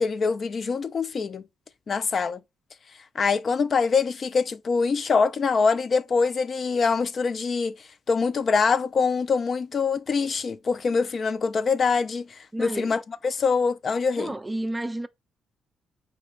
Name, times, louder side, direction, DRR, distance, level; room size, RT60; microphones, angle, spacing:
voice 1, 0.0-1.4 1.9-2.4 3.2-7.8 8.1-14.3, left 5 dB, 45° left, 0.4 m, -24 dB
voice 2, 12.5-12.9 14.2-15.1, right 1 dB, 15° right, 0.4 m, -31 dB
5.0 x 3.2 x 3.2 m
cardioid pair, 90°, 0 cm